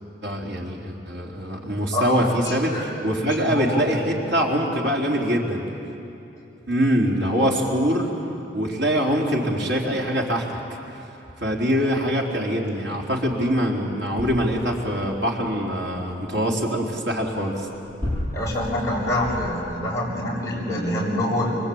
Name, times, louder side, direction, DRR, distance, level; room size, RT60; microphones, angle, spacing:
voice 1, 0.2-5.6 6.7-8.1 8.5-10.6 11.4-17.7, equal, 80° right, -2 dB, 3.9 m, -23 dB
voice 2, 2.4-2.8 3.2-4.0 18.3-21.6, left 1 dB, 15° left, -5 dB, 6.9 m, -26 dB
sound 1, 13.5-13.6 13.8-15.2 17.5-19.9 20.6-20.7, left 1 dB, 20° right, 7.8 m, -33 dB
26.0 x 24.0 x 8.7 m, 2.8 s
head